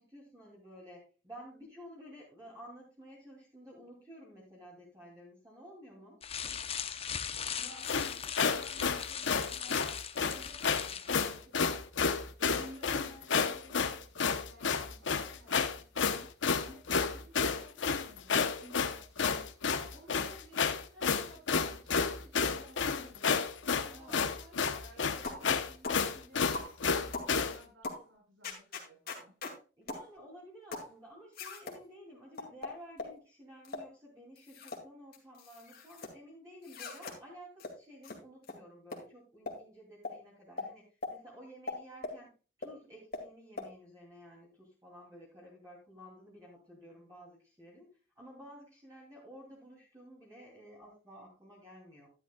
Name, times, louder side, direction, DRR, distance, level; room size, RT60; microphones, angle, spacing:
voice 1, 0.0-6.6 23.9-24.3 29.8-42.3 42.6-47.9 48.2-52.1, equal, 15° right, -5 dB, 2.8 m, -53 dB
sound 1, 6.2-11.2, left 8 dB, 30° left, 0.7 m, -39 dB
voice 2, 7.6-11.8 12.4-16.3 16.6-23.3 23.7-26.5 26.9-29.3, equal, 80° right, -3 dB, 5.4 m, -55 dB
sound 2, 7.9-27.6, left 5 dB, 70° left, 0.8 m, -30 dB
sound 3, 25.2-25.5 25.8-26.0 26.5-26.7 27.1-27.3 27.8-28.0 28.4-29.6 29.9-30.1 30.7-30.9 31.3-31.8 32.4-33.2 33.6-33.9 34.4-34.8 35.1-36.1 36.6-37.2 37.6-37.7 38.0-38.2 38.4-38.6 38.9-39.0 39.5-39.6 40.0-40.2 40.6-40.7 41.0-41.1 41.7-42.2 42.6-42.7 43.1-43.2 43.6-43.7, left 3 dB, 50° left, 2.3 m, -40 dB
11.5 x 11.5 x 2.3 m, 0.34 s
head